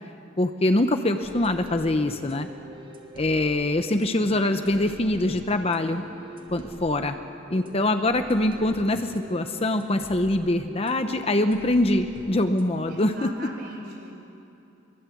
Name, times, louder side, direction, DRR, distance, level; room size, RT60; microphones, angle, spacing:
voice 1, 0.4-2.5 3.1-6.0 6.5-7.2 7.5-13.3, left 1 dB, 30° left, 7 dB, 0.9 m, -24 dB
sound 1, 1.2-13.2, equal, 30° right, 3.4 m, -44 dB
voice 2, 12.9-14.1, right 1 dB, 55° right, -1 dB, 6.6 m, -40 dB
23.0 x 22.5 x 8.5 m, 2.8 s
head